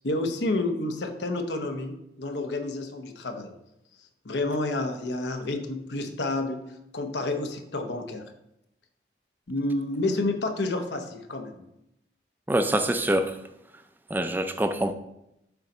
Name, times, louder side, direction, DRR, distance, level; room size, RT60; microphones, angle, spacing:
voice 1, 0.0-3.5 4.2-6.6 6.9-8.3 9.5-11.7, left 2 dB, 80° left, 0.8 m, -29 dB
voice 2, 12.5-13.4 14.1-14.9, right 1 dB, 10° right, 0.4 m, -25 dB
7.1 x 3.9 x 5.4 m
head